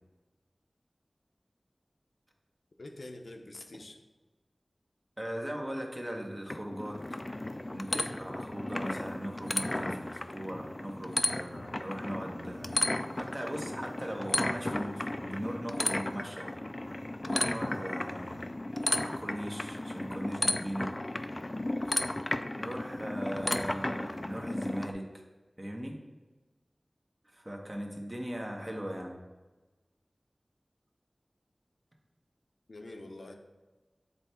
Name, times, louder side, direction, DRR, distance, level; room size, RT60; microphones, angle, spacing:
voice 1, 2.8-4.0 32.7-33.3, left 2 dB, 85° left, 3 dB, 0.6 m, -45 dB
voice 2, 5.2-7.2 7.7-16.5 17.3-18.4 19.0-20.9 22.6-25.2 25.6-26.0 27.3-29.1, equal, 30° right, 1 dB, 1.0 m, -39 dB
sound 1, 6.5-24.9, left 1 dB, 35° left, 0.3 m, -34 dB
7.7 x 3.4 x 4.3 m, 1.2 s
wide cardioid pair, 55°, 0 cm